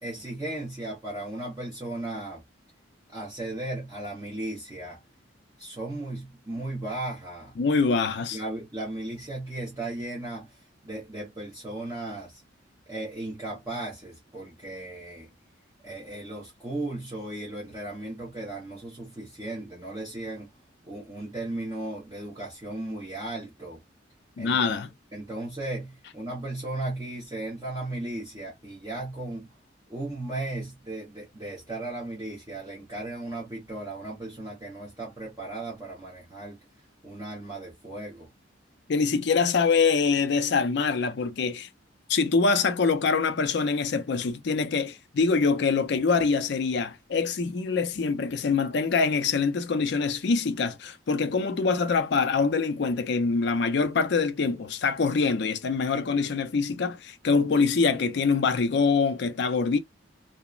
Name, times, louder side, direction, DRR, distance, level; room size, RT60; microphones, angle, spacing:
voice 1, 0.0-2.4 3.1-5.0 5.6-7.5 8.3-12.4 12.9-15.3 15.8-20.5 20.8-23.8 24.4-24.7 25.1-29.5 29.9-36.6 37.0-38.3, right 2 dB, 20° right, 0.8 m, -36 dB
voice 2, 7.6-8.4 24.4-24.9 38.9-41.7 42.1-59.8, left 4 dB, 60° left, 0.4 m, -24 dB
2.8 x 2.0 x 2.3 m
head